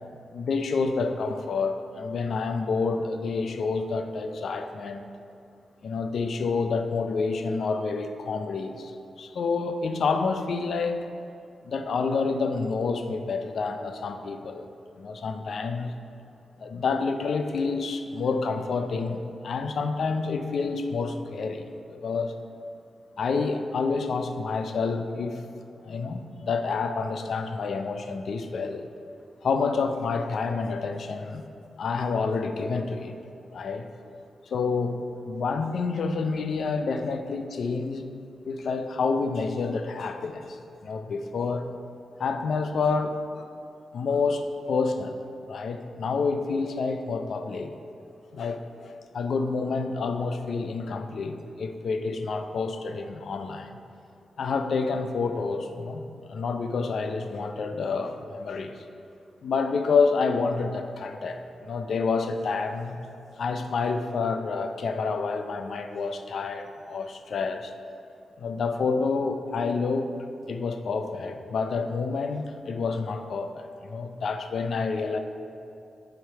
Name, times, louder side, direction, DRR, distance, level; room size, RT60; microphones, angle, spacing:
voice 1, 0.3-5.0 5.8-11.1 11.6-14.7 15.0-15.9 16.6-22.3 23.2-25.4 25.8-28.9 29.4-31.4 31.8-33.2 33.5-33.9 34.5-35.0 35.3-38.0 38.5-41.7 42.2-43.5 43.9-45.2 45.5-47.7 48.3-53.7 54.4-56.0 56.3-58.8 59.4-63.0 63.4-67.7 68.4-70.1 70.5-75.2, left 4 dB, 65° left, 7 dB, 0.4 m, -28 dB
7.7 x 3.5 x 5.6 m, 2.5 s
wide cardioid pair, 150°, 0 cm